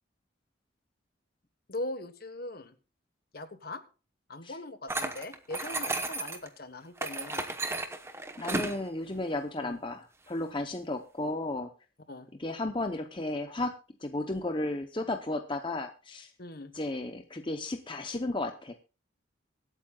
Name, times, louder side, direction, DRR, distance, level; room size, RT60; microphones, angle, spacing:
voice 1, 1.7-2.7 3.3-3.8 4.3-7.5 9.6-9.8 12.1-12.3 16.4-16.7, left 2 dB, 50° left, 10 dB, 1.3 m, -40 dB
sound 1, 4.9-6.5 7.0-8.8, right 2 dB, 15° right, 1.0 m, -33 dB
voice 2, 8.4-11.7 12.4-16.3 16.7-18.8, left 2 dB, 25° left, 6 dB, 0.8 m, -34 dB
24.0 x 8.8 x 2.3 m, 0.33 s
head